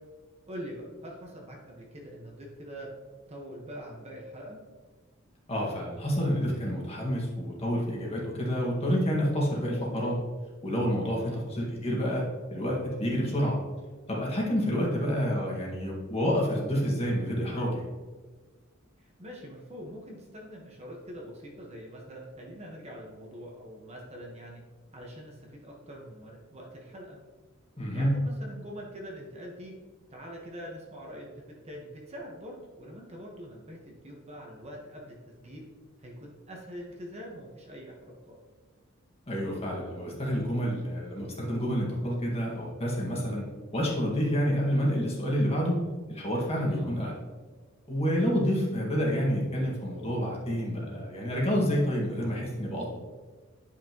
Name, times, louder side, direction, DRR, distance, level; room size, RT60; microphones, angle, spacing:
voice 1, 0.5-2.9 3.3-4.6 11.1-11.4 19.0-24.6 24.9-27.2 27.9-29.7 30.1-35.6 36.0-38.4 46.6-46.9, equal, 30° right, -1 dB, 1.3 m, -44 dB
voice 2, 5.5-10.2 10.6-12.2 12.5-13.6 14.1-17.9 27.8-28.1 39.3-43.5 43.7-45.8 46.1-47.1 47.9-52.9, equal, 30° left, -3 dB, 1.8 m, -28 dB
10.0 x 5.9 x 3.0 m, 1.4 s
head